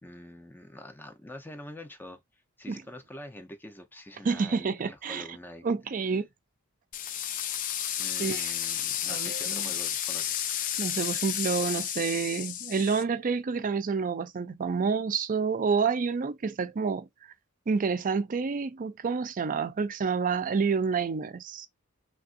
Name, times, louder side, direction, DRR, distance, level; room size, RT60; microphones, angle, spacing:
voice 1, 0.0-2.2 2.6-5.7 8.0-10.5, left 1 dB, 10° left, 0.7 m, -45 dB
voice 2, 4.2-5.2 5.6-6.3 8.2-8.5 9.1-9.7 10.8-17.1 17.7-21.7, right 5 dB, 40° right, 0.4 m, -28 dB
sound 1, 6.9-13.0, left 10 dB, 40° left, 0.3 m, -32 dB
3.4 x 2.5 x 2.5 m
head